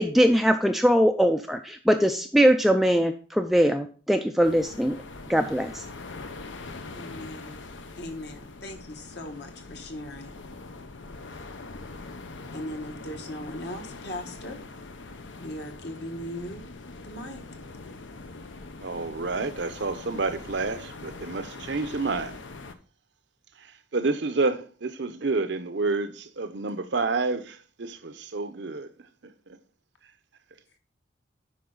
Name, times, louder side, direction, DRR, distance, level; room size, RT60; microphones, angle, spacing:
voice 1, 0.0-5.0 5.3-5.9, equal, ahead, 0.3 m, -21 dB
sound 1, 4.4-22.7, left 3 dB, 80° left, 0.8 m, -42 dB
voice 2, 6.9-7.6 8.0-10.3 12.5-14.6 15.4-16.7 17.0-17.4, left 1 dB, 60° left, 1.3 m, -38 dB
voice 3, 18.8-22.4 23.6-23.7 23.9-28.9 29.5-29.6, right 3 dB, 65° right, 0.7 m, -29 dB
8.5 x 5.5 x 3.8 m
head